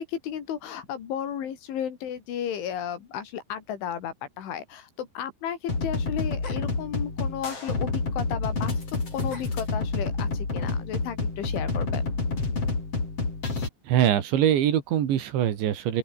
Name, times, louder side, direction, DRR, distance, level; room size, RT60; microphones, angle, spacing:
voice 1, 0.0-12.0, left 9 dB, 80° left, 5.6 m, -34 dB
sound 1, 5.7-13.7, left 3 dB, 30° left, 6.7 m, -29 dB
voice 2, 13.8-16.0, right 10 dB, 75° right, 4.6 m, -23 dB
open air
omnidirectional pair, 5.4 m